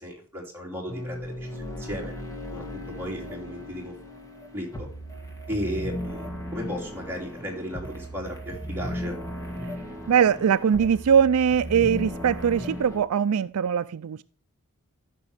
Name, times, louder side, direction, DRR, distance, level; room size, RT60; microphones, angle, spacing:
voice 1, 0.0-2.1 2.5-3.9 4.5-4.9 5.5-9.1, equal, 10° right, 3.2 m, -35 dB
sound 1, 0.9-13.0, equal, 15° left, 1.8 m, -36 dB
voice 2, 10.1-14.2, right 7 dB, 75° right, 0.4 m, -21 dB
14.0 x 5.9 x 3.4 m
head